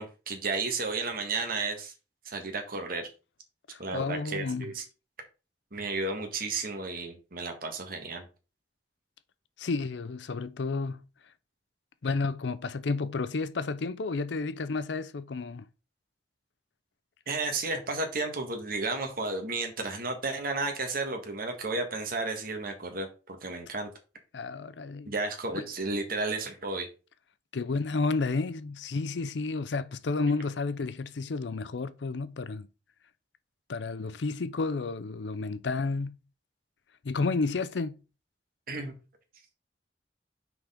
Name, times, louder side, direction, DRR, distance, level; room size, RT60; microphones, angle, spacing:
voice 1, 0.0-1.9 2.2-3.1 3.8-4.8 5.7-8.2 17.3-23.9 25.0-26.9 38.7-38.9, right 3 dB, 55° right, 1.7 m, -33 dB
voice 2, 3.7-4.7 9.6-11.0 12.0-15.7 24.3-25.1 25.5-25.6 27.5-32.7 33.7-36.1 37.0-38.0, left 3 dB, 85° left, 0.5 m, -31 dB
6.1 x 5.0 x 3.7 m
head